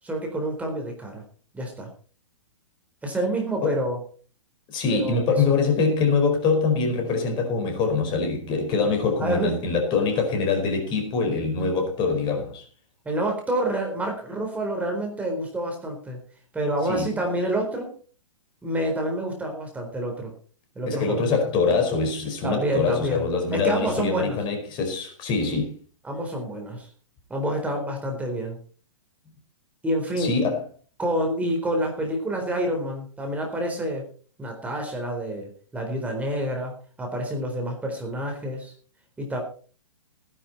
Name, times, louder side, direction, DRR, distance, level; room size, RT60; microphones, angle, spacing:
voice 1, 0.0-1.2 1.5-1.9 3.0-4.0 4.9-5.4 9.2-9.5 13.0-16.2 16.5-17.9 18.6-20.3 20.8-21.2 22.4-23.3 23.5-24.4 26.0-26.9 27.3-28.6 29.8-30.3 31.0-34.0 34.4-36.7 37.0-38.7 39.2-39.4, right 1 dB, 10° right, 4.2 m, -28 dB
voice 2, 4.7-12.6 16.9-17.1 20.9-25.8 30.1-30.6, left 4 dB, 30° left, 4.9 m, -24 dB
18.0 x 11.0 x 4.3 m
figure-of-eight pair, 115°, 16 cm